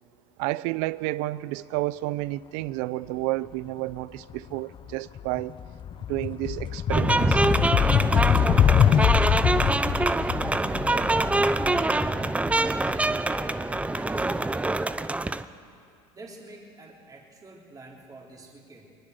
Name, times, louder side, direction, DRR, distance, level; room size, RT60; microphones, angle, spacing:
voice 1, 0.4-5.5 6.1-7.5, right 18 dB, 70° right, 0.6 m, -30 dB
sound 1, 4.3-4.5 4.9-13.8, left 9 dB, 35° left, 0.6 m, -24 dB
sound 2, 6.9-15.4, right 2 dB, 10° right, 0.6 m, -25 dB
voice 2, 13.9-15.1 16.1-18.9, right 2 dB, 25° right, 3.7 m, -47 dB
21.0 x 20.5 x 6.5 m
supercardioid pair, 95°, 15 cm